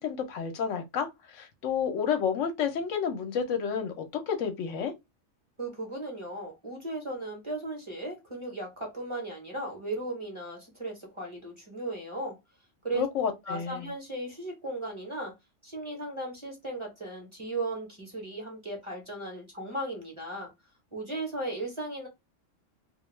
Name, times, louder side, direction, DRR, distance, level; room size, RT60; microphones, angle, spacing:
voice 1, 0.0-4.9 12.9-13.9, left 7 dB, 75° left, 0.9 m, -30 dB
voice 2, 5.6-12.4 12.8-13.1 13.4-15.3 15.6-20.5 20.9-22.1, right 1 dB, 25° right, 0.8 m, -36 dB
2.3 x 2.2 x 3.1 m
omnidirectional pair, 1.3 m